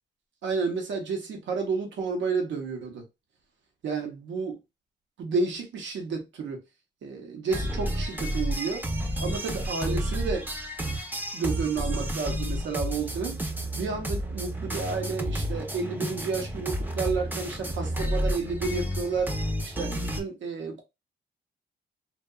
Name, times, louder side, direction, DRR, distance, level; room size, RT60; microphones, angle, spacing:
voice 1, 0.4-3.0 3.8-4.5 5.2-6.6 7.0-8.9 9.2-10.5 11.3-13.4 13.7-19.3 19.6-20.8, right 4 dB, 85° right, 0.8 m, -31 dB
sound 1, 7.5-20.2, equal, 10° right, 0.5 m, -31 dB
2.7 x 2.2 x 2.2 m
cardioid pair, 105°, 19 cm